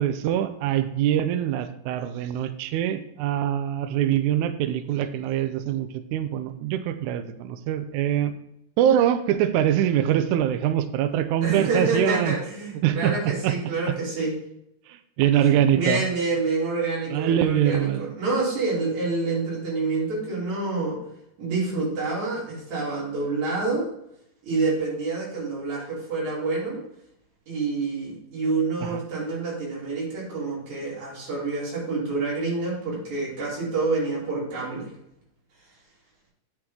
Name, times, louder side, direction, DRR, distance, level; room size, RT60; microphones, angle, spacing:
voice 1, 0.0-8.3 8.8-12.3 12.8-13.6 13.9-14.0 14.9-16.1 17.1-18.1 28.8-29.0, right 10 dB, 90° right, 10 dB, 1.7 m, -24 dB
voice 2, 11.4-14.3 15.5-21.0 21.4-23.9 24.4-26.8 27.5-34.9, right 3 dB, 50° right, -5 dB, 4.3 m, -27 dB
8.9 x 7.6 x 3.7 m, 0.79 s
omnidirectional pair, 4.2 m